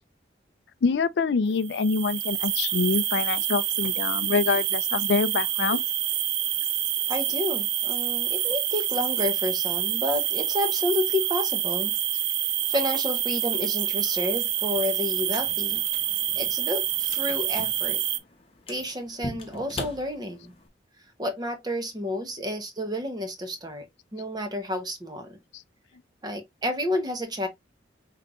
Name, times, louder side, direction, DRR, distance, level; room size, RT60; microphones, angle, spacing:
voice 1, 0.8-5.8, left 5 dB, 65° left, 0.4 m, -25 dB
sound 1, 1.6-18.2, right 11 dB, 65° right, 0.5 m, -27 dB
voice 2, 7.1-11.9 12.7-15.8 16.4-18.0 18.7-20.5 21.2-23.8 24.1-25.4 26.2-27.5, left 1 dB, 20° right, 0.8 m, -30 dB
sound 2, 15.2-20.7, left 2 dB, 30° left, 0.9 m, -41 dB
5.8 x 2.9 x 2.4 m
head